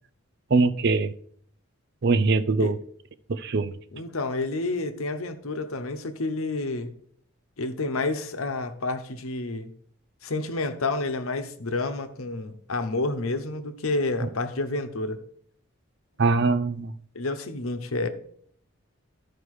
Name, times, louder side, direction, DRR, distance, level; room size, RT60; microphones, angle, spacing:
voice 1, 0.5-1.1 2.0-2.8 3.3-3.7 14.2-14.3 16.2-16.9, right 3 dB, 50° right, 0.5 m, -22 dB
voice 2, 3.9-6.9 7.6-9.7 10.2-15.2 17.1-18.1, left 2 dB, 85° left, 1.0 m, -29 dB
12.5 x 4.7 x 4.8 m
head